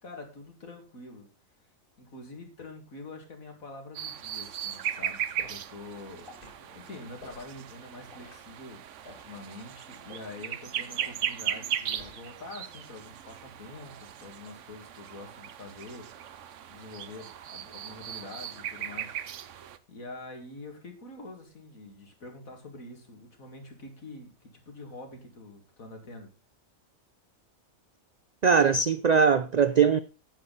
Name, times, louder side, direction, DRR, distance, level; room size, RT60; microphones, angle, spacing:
voice 1, 0.0-1.3 2.0-6.3 6.6-16.1 16.4-19.1 19.9-26.3, left 2 dB, 85° left, 2.8 m, -46 dB
sound 1, 3.9-19.8, right 10 dB, 65° right, 1.0 m, -37 dB
Liquid, 5.4-5.6 6.2-6.6 7.2-7.5 8.1-8.4 9.0-9.3 10.0-10.3 11.0-11.2 11.9-12.3 12.7-13.0, left 1 dB, 40° left, 3.2 m, -50 dB
voice 2, 28.4-30.0, right 6 dB, 85° right, 0.3 m, -21 dB
10.5 x 8.4 x 4.1 m
omnidirectional pair, 1.4 m